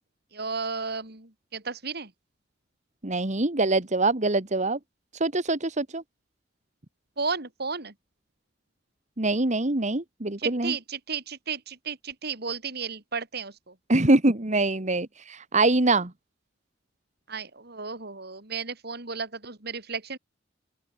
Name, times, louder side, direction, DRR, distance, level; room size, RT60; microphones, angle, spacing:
voice 1, 0.3-2.1 7.2-7.9 10.4-13.7 17.3-20.2, right 5 dB, 60° right, 3.9 m, -33 dB
voice 2, 3.0-4.8 5.2-6.0 9.2-10.7 13.9-16.1, right 2 dB, 40° right, 1.8 m, -24 dB
open air
head